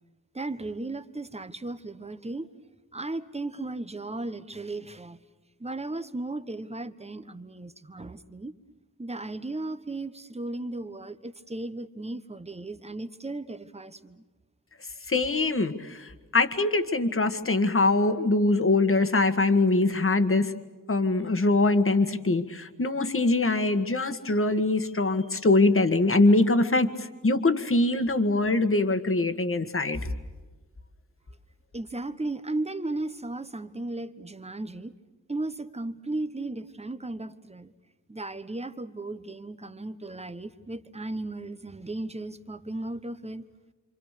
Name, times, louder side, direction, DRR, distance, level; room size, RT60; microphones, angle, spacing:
voice 1, 0.3-2.5 2.9-5.2 5.6-8.5 9.0-14.2 31.7-34.9 35.3-37.7 38.1-43.4, right 2 dB, 20° right, 1.2 m, -35 dB
voice 2, 15.1-20.5 20.9-26.9 27.2-30.0, left 2 dB, 40° left, 1.8 m, -23 dB
27.5 x 27.0 x 6.7 m
wide cardioid pair, 110°, 33 cm